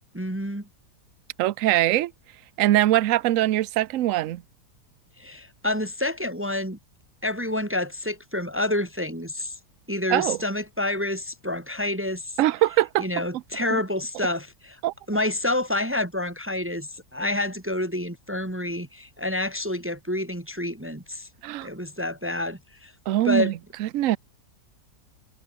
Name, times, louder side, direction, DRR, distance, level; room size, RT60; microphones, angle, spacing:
voice 1, 0.1-0.7 5.2-6.8 7.2-9.6 9.9-12.4 13.0-14.8 15.1-21.3 21.6-22.9 23.2-23.5, left 1 dB, 10° right, 0.9 m, -28 dB
voice 2, 1.4-2.1 2.6-4.4 10.1-10.4 12.4-13.0 13.7-13.8 14.8-14.9 21.4-21.7 23.1-23.5 23.8-24.2, right 14 dB, 65° right, 0.9 m, -22 dB
omnidirectional pair, 1.8 m